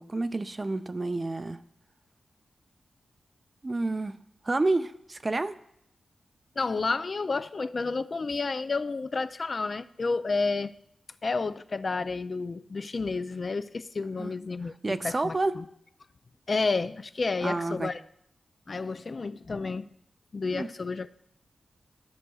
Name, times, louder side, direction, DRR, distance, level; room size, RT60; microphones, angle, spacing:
voice 1, 0.0-1.6 3.6-4.2 4.4-5.5 14.2-14.3 14.8-15.5 17.4-17.9 20.5-20.7, right 2 dB, 35° right, 11 dB, 0.5 m, -29 dB
voice 2, 6.6-10.7 11.2-15.7 16.5-18.0 18.7-19.9 20.3-21.3, left 4 dB, 55° left, 13 dB, 0.3 m, -30 dB
13.5 x 6.2 x 2.3 m, 0.73 s
cardioid pair, 55°, 0 cm